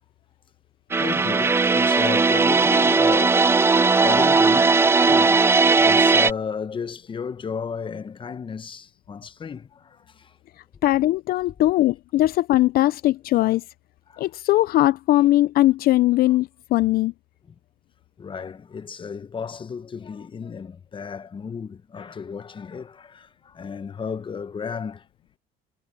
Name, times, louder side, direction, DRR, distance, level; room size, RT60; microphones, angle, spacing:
sound 1, 0.9-6.3, right 4 dB, 15° right, 0.4 m, -18 dB
voice 1, 1.0-3.5 4.0-4.7 5.0-5.4 5.8-10.3 14.1-14.3 18.2-25.0, left 6 dB, 30° left, 0.9 m, -33 dB
voice 2, 10.8-13.6 14.2-17.1, left 16 dB, 65° left, 0.4 m, -20 dB
cardioid pair, 110°, 17 cm